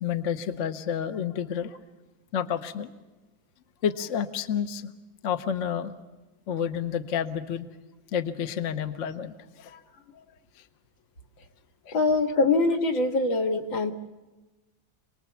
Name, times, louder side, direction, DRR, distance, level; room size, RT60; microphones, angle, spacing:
voice 1, 0.0-1.7 2.3-2.9 3.8-4.9 5.2-5.9 6.5-7.7 8.1-9.3 9.6-9.8 10.1-10.2 11.9-12.0, left 8 dB, 50° left, 8 dB, 1.1 m, -30 dB
voice 2, 11.9-13.9, left 3 dB, 75° left, 3 dB, 2.3 m, -23 dB
27.0 x 19.5 x 7.1 m, 1.1 s
omnidirectional pair, 2.1 m